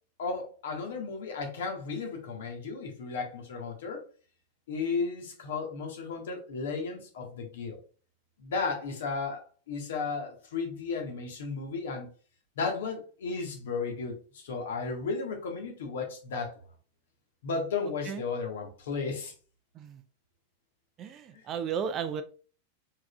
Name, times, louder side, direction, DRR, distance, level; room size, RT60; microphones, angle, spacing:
voice 1, 0.2-4.0 4.7-7.8 8.4-12.1 12.6-16.5 17.4-19.3, left 4 dB, 60° left, 3 dB, 1.4 m, -34 dB
voice 2, 21.0-22.2, right 7 dB, 30° right, 10 dB, 0.4 m, -34 dB
4.7 x 4.7 x 2.4 m, 0.39 s
figure-of-eight pair, 90°, 0 cm